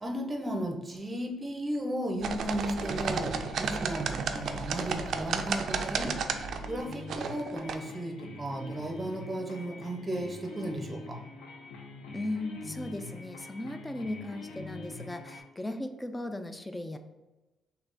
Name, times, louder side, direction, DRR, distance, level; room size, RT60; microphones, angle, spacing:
voice 1, 0.0-6.2 6.7-11.2, right 1 dB, 20° right, 2 dB, 0.7 m, -35 dB
sound 1, 2.2-15.4, left 3 dB, 85° left, 0.6 m, -44 dB
sound 2, 2.2-7.8, right 6 dB, 65° right, 0.3 m, -33 dB
voice 2, 12.1-17.0, left 1 dB, 15° left, 8 dB, 0.4 m, -37 dB
3.4 x 2.8 x 4.0 m, 1.1 s
cardioid pair, 90°, 0 cm